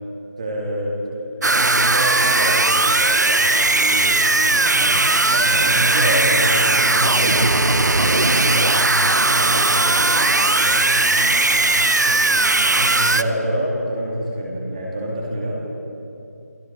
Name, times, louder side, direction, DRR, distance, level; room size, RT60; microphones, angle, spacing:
voice 1, 0.4-6.5 12.8-15.5, equal, 20° right, -2 dB, 2.6 m, -27 dB
sound 1, 1.4-13.2, right 2 dB, 75° right, 0.9 m, -18 dB
sound 2, 2.8-10.4, left 2 dB, 10° left, 1.2 m, -38 dB
voice 2, 5.4-13.3, equal, 5° right, -9 dB, 2.6 m, -28 dB
29.5 x 21.0 x 5.4 m, 2.7 s
figure-of-eight pair, 175°, 10 cm